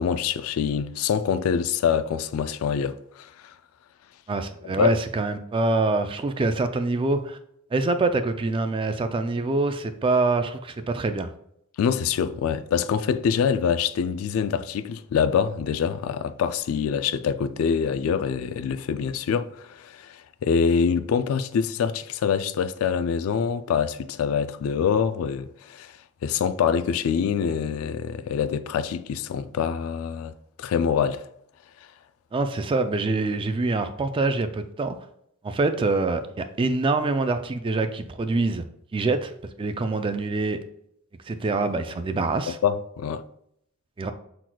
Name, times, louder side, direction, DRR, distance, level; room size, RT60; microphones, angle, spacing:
voice 1, 0.0-3.5 4.6-5.0 11.8-26.0 26.2-30.3 30.6-31.3 42.5-43.2, left 7 dB, 70° left, 0.3 m, -25 dB
voice 2, 4.3-7.4 7.7-11.3 32.3-35.0 35.4-38.6 38.9-39.3 39.6-40.6 41.3-42.6 44.0-44.1, right 3 dB, 25° right, 0.3 m, -25 dB
6.0 x 3.9 x 2.2 m
head